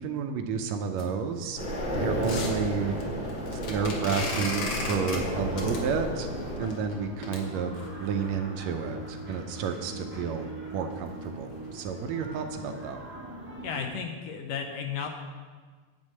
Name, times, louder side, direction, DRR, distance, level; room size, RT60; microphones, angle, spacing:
voice 1, 0.0-1.6 2.0-3.0 3.5-6.3 6.6-13.0, right 6 dB, 75° right, 6 dB, 1.8 m, -31 dB
sound 1, 0.9-8.3 8.9-9.0 9.3-9.4 9.7-9.9 10.2-10.3 10.7-10.9 11.2-11.3 11.8-11.9, left 3 dB, 60° left, 1.8 m, -38 dB
sound 2, 1.6-6.6, equal, 45° left, 1.0 m, -32 dB
sound 3, 4.2-13.9, right 2 dB, 10° right, 0.4 m, -42 dB
voice 2, 13.6-15.1, left 6 dB, 75° left, 4 dB, 1.6 m, -34 dB
9.9 x 4.3 x 7.4 m, 1.5 s
omnidirectional pair, 3.3 m